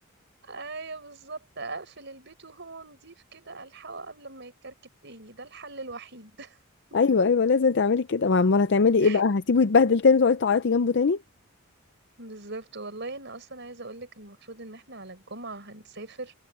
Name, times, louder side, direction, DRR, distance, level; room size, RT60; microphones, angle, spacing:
voice 1, 0.4-4.7 5.0-6.6 9.0-9.2 12.2-16.3, right 3 dB, 55° right, 5.9 m, -41 dB
voice 2, 6.9-11.2, left 4 dB, 55° left, 0.5 m, -21 dB
head